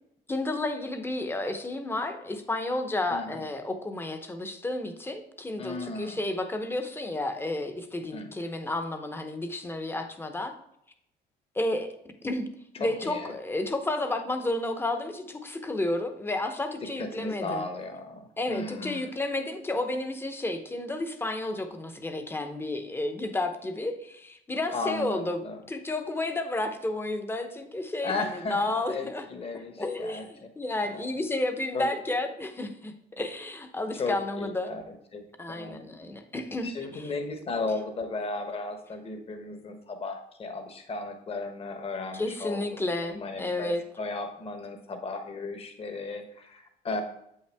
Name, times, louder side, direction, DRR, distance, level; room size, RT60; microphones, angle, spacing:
voice 1, 0.3-10.5 11.5-11.9 12.2-12.5 12.8-17.6 18.4-25.4 25.7-29.3 29.8-34.7 35.4-37.1 42.1-43.8, left 2 dB, 15° left, 7 dB, 0.8 m, -31 dB
voice 2, 3.1-3.4 5.6-6.2 8.1-8.3 12.8-13.3 17.0-19.1 24.7-25.6 28.0-30.3 30.8-31.1 31.7-31.9 33.9-35.8 36.6-42.6 43.1-47.0, left 3 dB, 35° left, 6 dB, 1.1 m, -35 dB
7.6 x 5.6 x 3.4 m, 0.75 s
cardioid pair, 110°, 17 cm